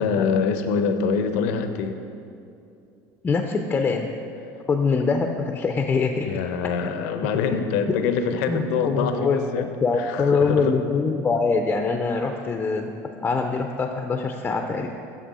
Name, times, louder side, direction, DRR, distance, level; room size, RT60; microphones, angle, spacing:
voice 1, 0.0-2.0 6.3-10.8, left 6 dB, 85° left, 8 dB, 0.5 m, -25 dB
voice 2, 3.2-4.1 4.7-6.4 8.5-12.9 13.2-14.9, left 4 dB, 20° left, 4 dB, 0.4 m, -23 dB
6.6 x 6.1 x 4.1 m, 2.5 s
supercardioid pair, 125°, 8 cm